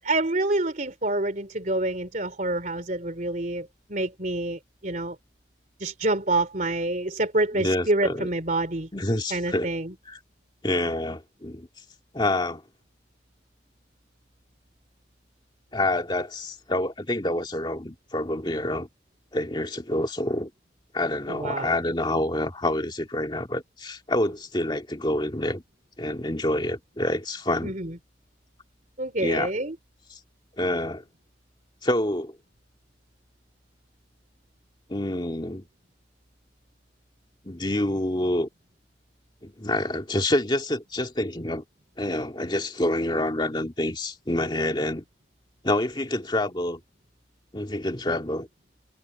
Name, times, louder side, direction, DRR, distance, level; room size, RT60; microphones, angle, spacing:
voice 1, 0.0-5.2 5.8-8.9 9.3-9.9 21.3-21.7 27.6-28.0 29.0-29.8, right 2 dB, 45° right, 3.2 m, -27 dB
voice 2, 7.5-8.3 8.9-9.7 10.1-10.2 10.6-11.7 12.1-12.6 15.7-18.9 19.3-20.5 20.9-25.6 26.0-27.7 29.2-29.5 30.1-30.2 30.6-31.0 31.8-32.3 34.9-35.6 37.5-38.5 39.4-41.6 42.0-45.0 45.6-46.8 47.5-48.5, left 1 dB, 25° left, 2.3 m, -27 dB
head